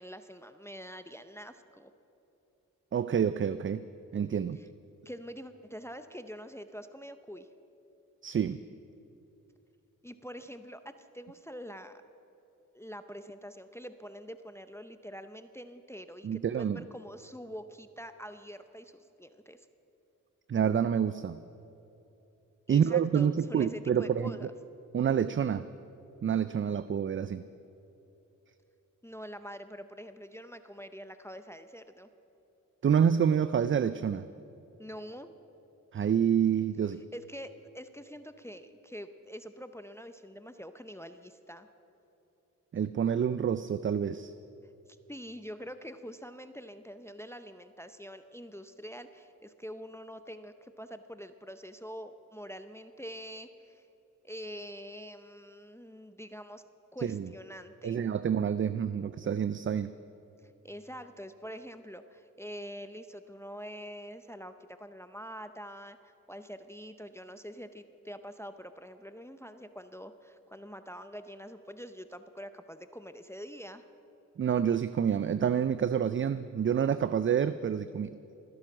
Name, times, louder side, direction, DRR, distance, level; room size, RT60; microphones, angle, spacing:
voice 1, 0.0-1.9 4.6-4.7 5.0-7.5 10.0-12.0 12.7-19.7 22.7-24.5 29.0-32.1 34.8-35.3 37.1-41.7 44.9-53.9 54.2-56.6 56.9-58.1 60.4-73.8, equal, 10° left, 10 dB, 0.7 m, -45 dB
voice 2, 2.9-3.9 4.1-4.6 8.2-8.6 16.2-16.8 20.5-21.4 22.7-24.4 24.9-25.7 26.2-27.4 32.8-34.3 35.9-37.0 42.7-44.3 57.0-57.3 57.8-59.9 74.4-78.1, right 8 dB, 40° right, 14 dB, 0.4 m, -28 dB
20.5 x 10.5 x 6.1 m, 3.0 s
cardioid pair, 60°, 34 cm